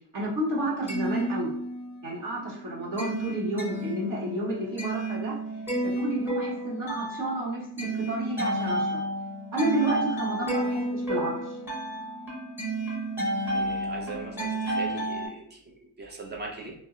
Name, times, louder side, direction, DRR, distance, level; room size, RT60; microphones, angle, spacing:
voice 1, 0.1-1.5 2.0-5.4 5.8-9.0 9.5-11.6, right 1 dB, 45° right, -5 dB, 1.1 m, -31 dB
sound 1, 0.6-2.1 2.4-15.3, right 1 dB, 5° right, 0.9 m, -31 dB
voice 2, 13.5-16.7, right 3 dB, 25° right, 0 dB, 0.5 m, -40 dB
2.6 x 2.0 x 3.6 m, 0.69 s
cardioid pair, 150°, 45 cm